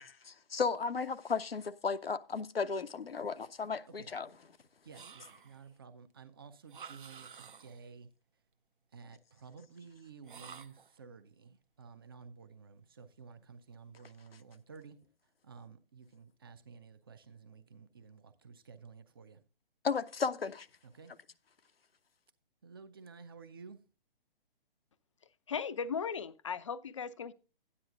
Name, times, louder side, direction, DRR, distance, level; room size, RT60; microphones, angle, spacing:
voice 1, 0.0-4.5 19.8-20.7, left 5 dB, 80° left, 0.6 m, -35 dB
voice 2, 4.8-8.1 8.9-15.0 15.4-19.4 20.9-21.1 22.6-23.8, right 5 dB, 25° right, 0.5 m, -53 dB
sound 1, 4.9-5.7 6.7-7.9 10.2-11.0, right 6 dB, 60° right, 0.7 m, -51 dB
voice 3, 25.5-27.3, left 6 dB, 35° left, 0.4 m, -37 dB
13.0 x 9.7 x 2.4 m
figure-of-eight pair, 130°, 29 cm